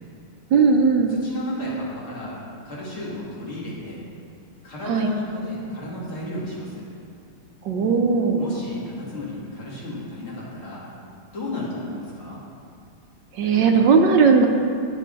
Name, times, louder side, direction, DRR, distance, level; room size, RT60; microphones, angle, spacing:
voice 1, 0.5-1.2 4.9-5.1 7.6-8.4 13.3-14.5, right 5 dB, 70° right, 4 dB, 1.3 m, -17 dB
voice 2, 1.1-2.4 2.6-4.0 4.6-6.8 8.4-10.8 11.3-12.4, left 1 dB, 85° left, -7 dB, 3.7 m, -33 dB
19.5 x 6.6 x 4.1 m, 2.4 s
omnidirectional pair, 2.2 m